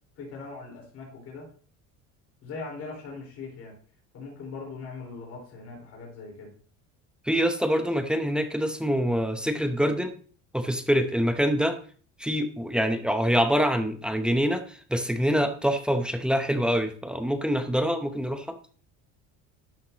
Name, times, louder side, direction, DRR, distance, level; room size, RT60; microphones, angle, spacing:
voice 1, 0.2-1.5 2.4-3.7 4.1-6.5, left 4 dB, 50° left, -1 dB, 4.6 m, -40 dB
voice 2, 7.3-10.1 10.5-11.8 12.2-18.6, equal, 5° right, 7 dB, 0.9 m, -25 dB
12.5 x 8.7 x 3.0 m, 0.43 s
cardioid pair, 140°, 33 cm